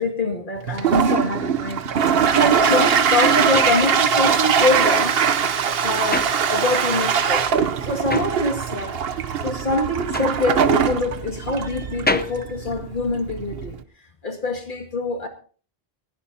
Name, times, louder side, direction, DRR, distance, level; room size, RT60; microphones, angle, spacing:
voice 1, 0.0-5.6 5.8-7.5 7.8-9.0 9.4-13.8 14.2-15.3, left 2 dB, 50° left, 3 dB, 2.3 m, -25 dB
Toilet flush, 0.6-13.8, right 7 dB, 65° right, 1.0 m, -21 dB
sound 1, 2.8-7.1 7.4-13.6, left 2 dB, 15° left, 0.5 m, -31 dB
20.0 x 15.5 x 2.7 m, 0.42 s
omnidirectional pair, 1.1 m